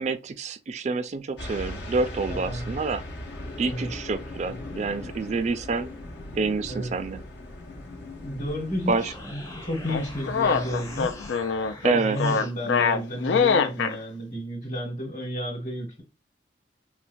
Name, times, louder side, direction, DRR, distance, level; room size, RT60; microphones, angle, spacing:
voice 1, 0.0-3.0 3.6-5.9 6.3-7.2 8.9-9.1 11.8-12.2, right 4 dB, 40° right, 0.3 m, -27 dB
sound 1, 1.4-11.3, left 1 dB, 70° left, 0.9 m, -39 dB
voice 2, 2.3-2.8 3.7-3.9 6.7-6.9 8.2-11.1 11.9-16.0, equal, 35° left, 1.2 m, -32 dB
sound 2, 8.7-12.6, left 2 dB, 20° left, 0.6 m, -43 dB
sound 3, 9.9-14.0, left 5 dB, 85° left, 0.4 m, -24 dB
4.3 x 2.1 x 2.6 m
head